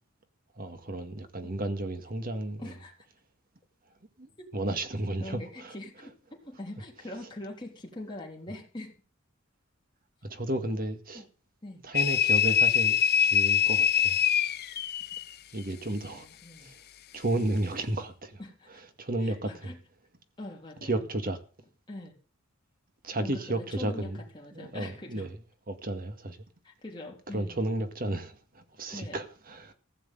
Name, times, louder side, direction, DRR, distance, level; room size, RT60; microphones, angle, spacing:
voice 1, 0.6-2.7 4.2-4.3 4.5-5.8 10.3-11.3 11.8-14.2 15.5-16.3 16.6-16.7 17.1-18.4 19.0-19.7 20.8-21.4 23.0-24.2 24.5-25.3 25.7-26.4 27.3-29.7, right 1 dB, 45° right, 1.9 m, -32 dB
voice 2, 2.6-2.9 4.4-4.5 5.2-8.9 11.1-11.3 11.6-11.8 16.1-16.7 18.4-18.7 19.2-19.8 20.4-21.0 21.9-22.1 23.2-25.3 26.6-27.7 28.9-29.2, left 1 dB, 20° left, 3.5 m, -43 dB
sound 1, 11.9-15.3, left 8 dB, 50° left, 0.6 m, -24 dB
15.5 x 6.5 x 9.2 m
head